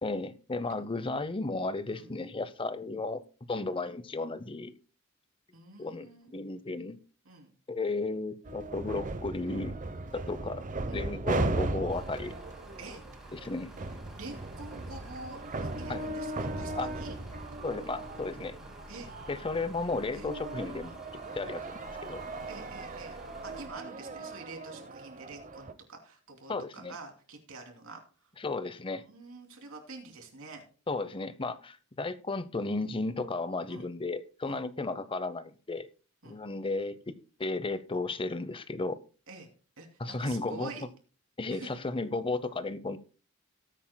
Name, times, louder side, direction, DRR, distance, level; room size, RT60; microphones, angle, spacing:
voice 1, 0.0-3.2 3.5-4.7 5.8-7.0 7.7-9.7 10.1-10.6 10.9-12.4 13.3-13.7 15.9-16.0 16.8-16.9 17.6-18.6 19.3-20.9 21.3-22.3 26.5-26.9 28.4-29.0 30.9-35.9 36.2-39.0 40.0-40.7 41.4-43.0, left 3 dB, 25° left, 14 dB, 0.7 m, -34 dB
voice 2, 5.5-6.3 7.2-7.5 10.9-11.1 12.8-13.0 14.1-17.1 18.9-19.1 20.1-20.3 22.5-23.2 23.4-28.3 29.1-30.6 33.7-33.9 34.4-34.6 36.2-36.4 39.3-39.5 39.8-40.8 41.5-41.7, right 3 dB, 65° right, 3 dB, 2.9 m, -47 dB
sound 1, 8.4-25.7, right 2 dB, 35° right, 0.8 m, -37 dB
sound 2, 11.9-23.7, equal, ahead, 2.0 m, -50 dB
19.0 x 8.6 x 2.2 m, 0.36 s
head